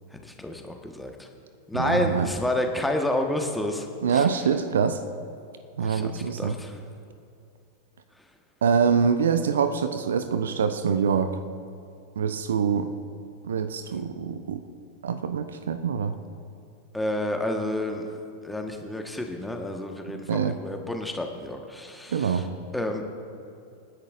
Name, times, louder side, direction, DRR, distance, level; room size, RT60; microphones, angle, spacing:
voice 1, 0.1-1.3 1.7-4.3 5.8-6.8 16.9-22.5 22.7-23.0, left 1 dB, 5° left, 3 dB, 1.4 m, -30 dB
voice 2, 1.7-2.3 4.0-5.0 5.8-6.6 8.6-11.4 12.2-12.9 13.4-14.6 15.0-16.2 20.1-20.6 22.1-22.5, right 6 dB, 65° right, 10 dB, 0.6 m, -25 dB
27.5 x 10.5 x 2.6 m, 2.6 s
figure-of-eight pair, 90°, 0 cm